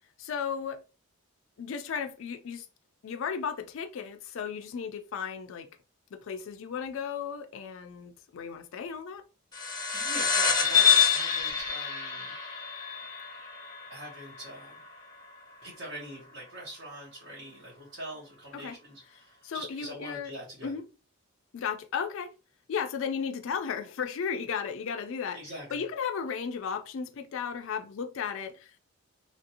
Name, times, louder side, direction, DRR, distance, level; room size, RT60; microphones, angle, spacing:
voice 1, 0.2-0.8 1.6-2.7 3.0-5.7 6.1-9.2 18.5-18.7 19.4-20.3 20.6-20.8 21.5-22.3 22.7-25.4 25.7-28.8, left 6 dB, 65° left, 0.3 m, -35 dB
sound 1, 9.5-14.4, left 7 dB, 15° left, 0.6 m, -26 dB
voice 2, 9.9-12.3 13.9-14.8 15.6-20.7 25.3-25.8, right 1 dB, 65° right, 1.1 m, -43 dB
2.9 x 2.5 x 2.7 m
head